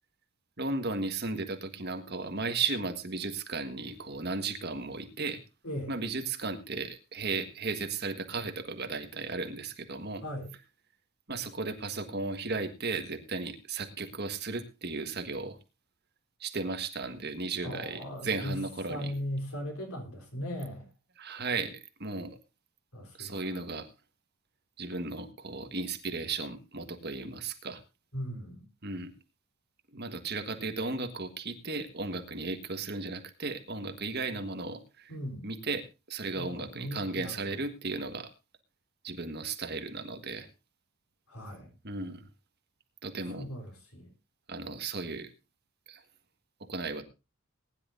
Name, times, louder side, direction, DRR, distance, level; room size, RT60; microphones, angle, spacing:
voice 1, 0.6-5.4 5.9-10.2 11.3-15.6 16.4-19.1 21.2-22.4 23.2-23.9 24.8-27.8 28.8-29.1 29.9-35.1 35.4-38.3 39.0-40.5 41.8-42.2 43.0-43.5 44.5-45.3 45.9-46.0 46.7-47.0, right 3 dB, 50° right, 1.6 m, -35 dB
voice 2, 10.2-10.5 17.6-18.6 18.9-20.8 22.9-23.5 28.1-28.7 35.1-35.5 36.3-37.4 41.3-41.7 43.4-44.1, equal, 75° left, 3.9 m, -38 dB
20.0 x 10.5 x 2.7 m
head